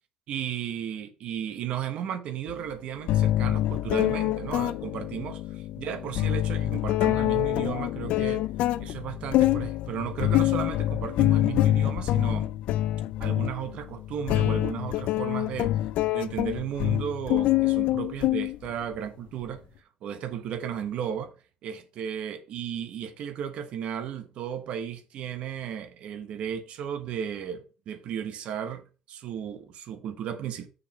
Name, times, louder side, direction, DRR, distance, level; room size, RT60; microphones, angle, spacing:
voice 1, 0.3-5.4 5.8-8.5 8.8-12.5 13.2-15.8 16.1-19.7 20.0-21.3 21.6-30.7, right 9 dB, 65° right, 1.2 m, -34 dB
sound 1, 2.5-2.6 3.1-19.0, left 14 dB, 85° left, 0.4 m, -26 dB
6.6 x 5.1 x 5.7 m
cardioid pair, 150°, 2 cm